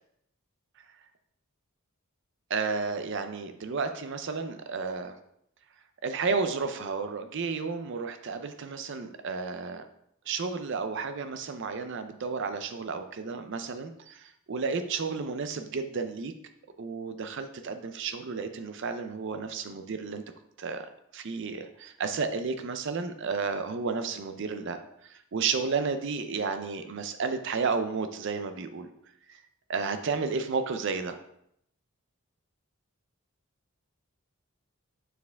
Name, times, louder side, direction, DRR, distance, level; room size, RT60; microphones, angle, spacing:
voice 1, 2.5-5.1 6.0-9.9 10.3-16.3 16.8-20.2 20.6-20.9 21.1-28.9 29.3-29.4 29.7-31.2, right 4 dB, 55° right, 8 dB, 0.5 m, -32 dB
6.6 x 4.6 x 3.5 m, 0.75 s
head